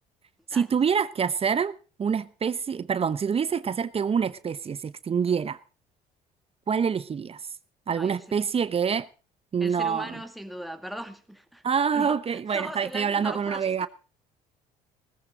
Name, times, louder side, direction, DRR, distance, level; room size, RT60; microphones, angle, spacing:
voice 1, 0.5-5.6 6.7-7.4 7.9-9.1 9.5-10.1 11.6-13.9, right 6 dB, 35° right, 0.8 m, -26 dB
voice 2, 9.6-11.6 11.9-13.9, right 1 dB, ahead, 2.3 m, -38 dB
18.5 x 14.5 x 3.8 m
supercardioid pair, 80°, 17 cm